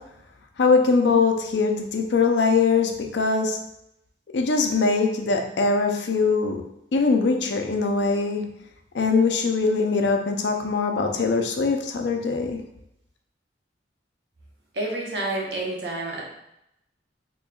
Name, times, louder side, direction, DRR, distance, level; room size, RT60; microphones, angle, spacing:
voice 1, 0.6-3.6 4.3-6.6 6.9-8.4 8.9-12.6, left 4 dB, 70° left, 4 dB, 0.5 m, -22 dB
voice 2, 14.7-16.2, right 2 dB, 70° right, -2 dB, 1.0 m, -29 dB
4.4 x 3.0 x 2.3 m, 0.81 s
head